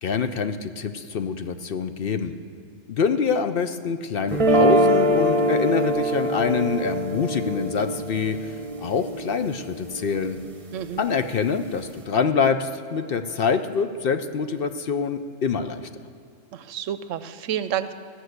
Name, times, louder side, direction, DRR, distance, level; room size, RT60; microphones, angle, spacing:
voice 1, 0.0-2.3 2.9-8.5 8.8-10.4 11.0-15.8, left 5 dB, 55° left, 9 dB, 0.7 m, -25 dB
sound 1, 4.3-10.4, right 1 dB, 30° right, 0.9 m, -23 dB
voice 2, 10.7-11.0 16.5-17.9, right 10 dB, 85° right, 13 dB, 1.0 m, -29 dB
14.0 x 6.2 x 7.9 m, 2.7 s
omnidirectional pair, 1.3 m